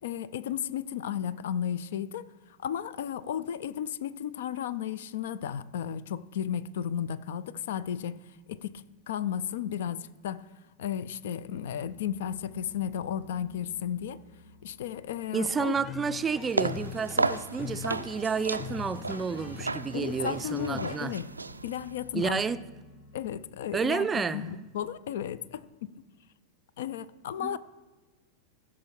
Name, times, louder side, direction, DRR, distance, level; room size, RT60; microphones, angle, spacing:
voice 1, 0.0-2.2 2.6-8.2 8.5-10.5 10.8-14.2 14.6-15.8 17.2-17.3 19.9-21.3 21.6-22.4 23.1-25.9 26.8-27.6, left 9 dB, 55° left, 0.4 m, -34 dB
sound 1, 11.4-23.2, left 2 dB, 80° left, 2.8 m, -53 dB
voice 2, 15.3-21.1 22.1-22.6 23.7-24.6 27.4-27.6, right 5 dB, 15° right, 0.4 m, -30 dB
sound 2, 15.7-21.0, left 9 dB, 25° left, 0.7 m, -42 dB
sound 3, 16.4-22.0, right 3 dB, 80° right, 0.4 m, -34 dB
15.5 x 6.0 x 4.5 m
figure-of-eight pair, 90°, 0 cm